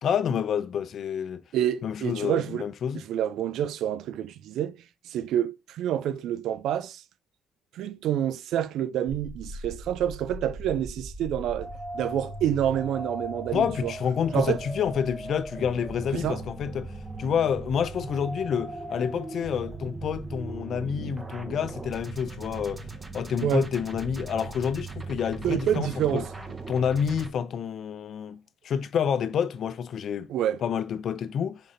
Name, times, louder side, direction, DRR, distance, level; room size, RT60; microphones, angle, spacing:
voice 1, 0.0-1.4 1.8-3.0 13.5-16.9 17.2-22.8 23.1-26.2 26.7-30.3 30.6-31.6, left 7 dB, 65° left, 0.5 m, -28 dB
voice 2, 1.5-2.7 2.9-7.0 7.7-13.9 14.3-14.6 16.1-16.4 23.4-23.7 25.4-26.3 30.3-30.6, right 10 dB, 80° right, 0.3 m, -28 dB
sound 1, 9.1-27.3, right 2 dB, 25° right, 0.8 m, -38 dB
5.2 x 2.7 x 3.8 m
cardioid pair, 90°, 0 cm